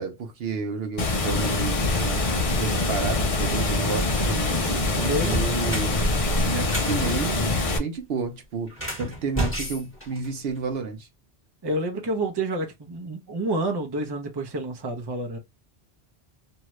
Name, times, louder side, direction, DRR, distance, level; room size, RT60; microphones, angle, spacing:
voice 1, 0.0-2.2 2.6-6.0 6.4-11.1, right 5 dB, 70° right, 0.9 m, -31 dB
Water, 1.0-7.8, left 2 dB, 40° left, 0.5 m, -24 dB
voice 2, 4.5-5.4 11.6-15.4, right 1 dB, 30° right, 0.6 m, -29 dB
sound 1, 5.3-7.0 8.7-10.7, right 1 dB, 10° left, 1.1 m, -30 dB
2.7 x 2.3 x 3.0 m
omnidirectional pair, 1.1 m